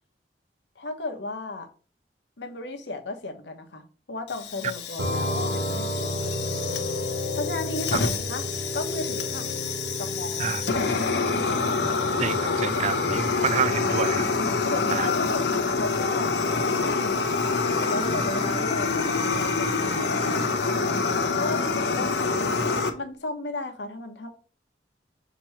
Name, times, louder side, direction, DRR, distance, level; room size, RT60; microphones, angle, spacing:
voice 1, 0.8-1.7 2.4-6.9 7.3-8.4 8.7-9.5 10.0-10.7 14.6-20.4 21.4-24.3, left 2 dB, 90° left, 1.2 m, -35 dB
Fire, 4.3-22.9, left 4 dB, 75° left, 0.9 m, -27 dB
sound 1, 5.0-14.5, left 1 dB, 80° right, 1.1 m, -33 dB
voice 2, 12.2-14.3 14.9-15.1, right 7 dB, 40° right, 0.3 m, -28 dB
Bowed string instrument, 17.4-21.2, left 4 dB, 35° left, 1.5 m, -40 dB
6.2 x 3.0 x 5.8 m
head